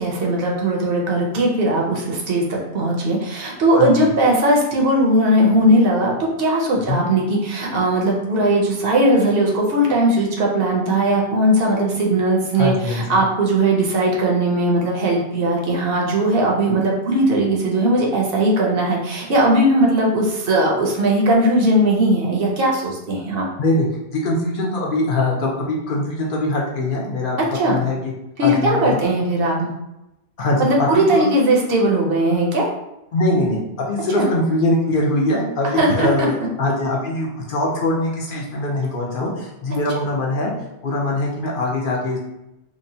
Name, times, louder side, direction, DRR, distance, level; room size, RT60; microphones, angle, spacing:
voice 1, 0.0-23.5 27.5-27.8 28.4-29.7 30.6-32.6 34.2-34.3 35.8-36.3, right 1 dB, 65° right, -2 dB, 0.8 m, -18 dB
voice 2, 3.8-4.1 6.9-7.0 12.6-13.2 23.6-23.9 24.1-28.1 28.4-29.0 30.4-31.2 33.1-33.6 33.9-40.5 40.8-42.2, left 2 dB, 60° left, -3 dB, 0.7 m, -22 dB
2.8 x 2.1 x 2.6 m, 0.89 s
omnidirectional pair, 1.1 m